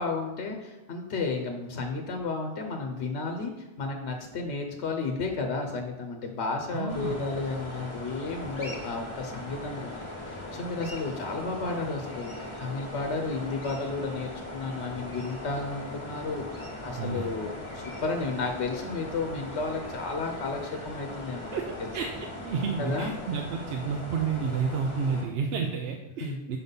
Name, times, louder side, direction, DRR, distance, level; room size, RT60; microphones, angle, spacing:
voice 1, 0.0-12.3 12.6-21.6 22.8-23.1 25.6-25.7 26.2-26.4, left 3 dB, 90° left, 3 dB, 1.1 m, -33 dB
voice 2, 6.7-7.2 16.9-17.4 21.5-22.1 22.4-26.6, right 5 dB, 70° right, 2 dB, 0.8 m, -31 dB
sound 1, 6.9-25.2, left 1 dB, 30° left, 1.3 m, -39 dB
6.2 x 4.0 x 5.3 m, 1.0 s
omnidirectional pair, 1.1 m